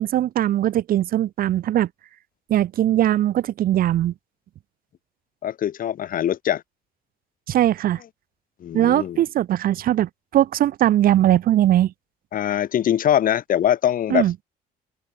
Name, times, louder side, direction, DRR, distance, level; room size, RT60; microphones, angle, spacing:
voice 1, 0.0-1.9 2.5-4.1 7.5-8.0 8.7-11.9 14.1-14.3, right 12 dB, 60° right, 1.0 m, -20 dB
voice 2, 5.4-6.6 8.6-9.2 12.3-14.3, left 10 dB, 55° left, 2.7 m, -22 dB
open air
cardioid pair, 110°, 17 cm